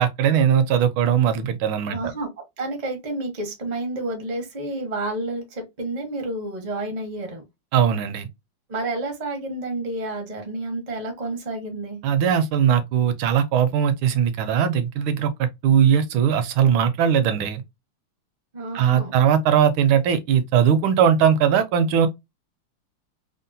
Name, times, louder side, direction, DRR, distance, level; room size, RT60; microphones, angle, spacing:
voice 1, 0.0-1.9 7.7-8.3 12.0-17.6 18.7-22.1, right 8 dB, 75° right, 1.3 m, -19 dB
voice 2, 1.9-2.3 2.6-7.4 8.7-12.0 18.5-19.2, right 2 dB, 55° right, 0.4 m, -30 dB
3.6 x 2.1 x 2.6 m
omnidirectional pair, 2.4 m